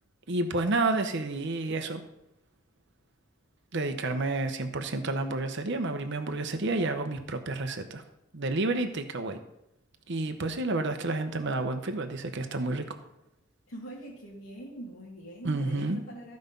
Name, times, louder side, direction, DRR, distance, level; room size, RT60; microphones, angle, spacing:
voice 1, 0.3-2.0 3.7-8.0 8.3-9.4 10.1-13.0 15.4-16.0, right 2 dB, 60° right, 7 dB, 0.9 m, -30 dB
voice 2, 13.7-16.4, right 1 dB, 80° left, -6 dB, 2.1 m, -43 dB
14.5 x 5.3 x 5.3 m, 0.83 s
head